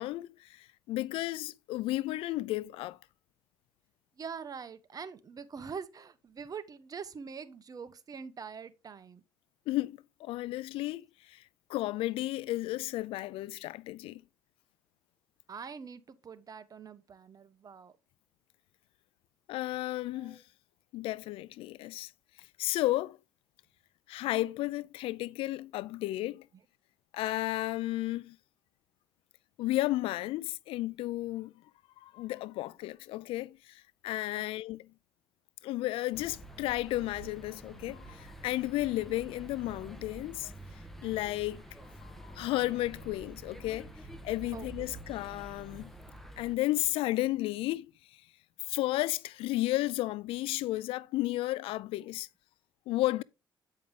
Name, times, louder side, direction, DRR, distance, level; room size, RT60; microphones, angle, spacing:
voice 1, 0.0-3.0 9.7-11.4 11.7-14.2 19.5-20.4 20.9-22.1 22.4-23.2 24.1-26.5 27.1-28.4 29.6-31.5 32.0-34.9 35.6-40.5 41.0-41.6 42.0-43.9 44.2-45.9 46.4-47.9 48.7-52.3 52.9-53.2, left 17 dB, 85° left, 0.4 m, -33 dB
voice 2, 4.2-9.2 15.5-17.9 20.1-20.4 34.4-34.5 44.5-45.0, right 6 dB, 40° right, 1.0 m, -44 dB
sound 1, 36.1-46.6, right 1 dB, 5° left, 1.5 m, -48 dB
8.7 x 5.4 x 3.7 m
cardioid pair, 85°, 9 cm